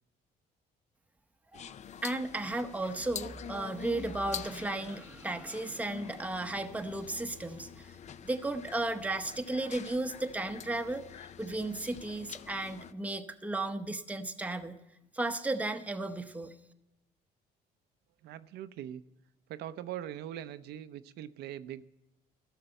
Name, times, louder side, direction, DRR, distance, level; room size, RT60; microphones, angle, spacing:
sound 1, 1.5-12.9, left 8 dB, 45° left, 0.5 m, -46 dB
voice 1, 2.0-8.0 8.2-14.8 15.1-16.5, right 2 dB, 10° right, 7 dB, 0.8 m, -34 dB
voice 2, 18.2-19.0 19.5-21.8, right 11 dB, 75° right, 13 dB, 0.6 m, -41 dB
13.5 x 6.7 x 8.9 m, 0.95 s
cardioid pair, 110°, 17 cm